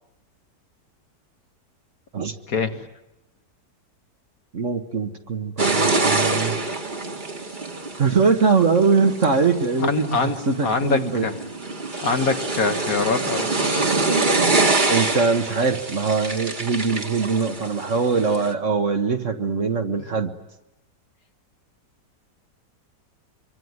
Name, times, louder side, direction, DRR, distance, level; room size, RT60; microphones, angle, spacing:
voice 1, 2.5-2.9 9.8-10.4 10.6-11.4 12.0-13.8, left 4 dB, 55° left, 6 dB, 1.9 m, -24 dB
voice 2, 4.5-6.6 8.0-11.3 14.3-20.3, right 4 dB, 45° right, 6 dB, 1.7 m, -22 dB
sound 1, 5.6-18.5, right 3 dB, 25° right, 1.9 m, -25 dB
25.0 x 25.0 x 9.5 m, 0.92 s
omnidirectional pair, 1.9 m